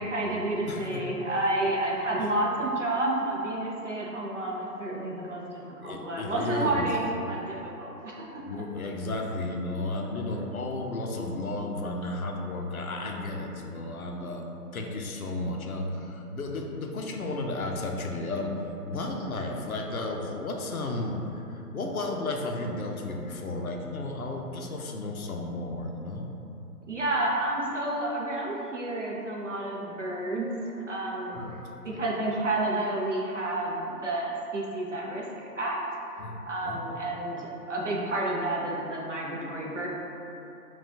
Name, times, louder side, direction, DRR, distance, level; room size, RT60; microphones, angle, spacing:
voice 1, 0.0-8.3 8.5-8.6 26.9-31.4 31.8-35.8 36.1-39.9, right 1 dB, 50° right, -3 dB, 0.6 m, -30 dB
voice 2, 0.7-1.0 2.2-2.3 5.8-6.9 8.4-14.4 14.7-26.3 31.3-31.6 31.9-32.0 36.2-36.9, left 2 dB, 65° left, 1 dB, 0.5 m, -33 dB
6.1 x 2.3 x 2.7 m, 3.0 s
hypercardioid pair, 180°, 48 cm